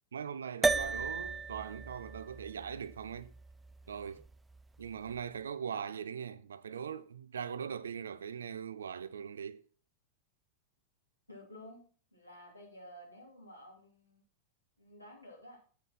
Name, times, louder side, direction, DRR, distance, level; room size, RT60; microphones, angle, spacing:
voice 1, 0.1-3.3 3.9-4.2 4.8-9.6, right 7 dB, 70° right, 0.5 m, -41 dB
sound 1, 0.6-5.2, right 4 dB, 10° right, 0.3 m, -36 dB
voice 2, 11.3-11.8 12.1-14.2 14.8-15.6, left 1 dB, 85° left, 2.6 m, -52 dB
8.2 x 7.2 x 4.3 m
figure-of-eight pair, 90°, 0 cm